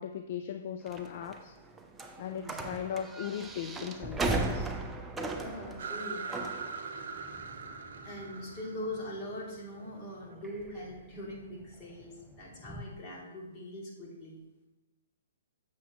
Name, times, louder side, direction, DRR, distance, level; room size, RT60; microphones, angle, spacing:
voice 1, 0.0-1.5 2.2-4.7, left 8 dB, 50° left, 8 dB, 0.4 m, -38 dB
sound 1, 0.9-12.8, right 2 dB, 10° right, 0.6 m, -39 dB
voice 2, 2.2-2.6 5.4-6.3 8.0-14.4, left 1 dB, 30° left, -4 dB, 2.6 m, -42 dB
Bowed string instrument, 4.3-8.7, right 8 dB, 30° right, 2.2 m, -58 dB
sound 2, 5.8-10.3, right 4 dB, 65° right, 0.9 m, -42 dB
7.7 x 7.0 x 3.1 m, 1.0 s
hypercardioid pair, 135°, 0 cm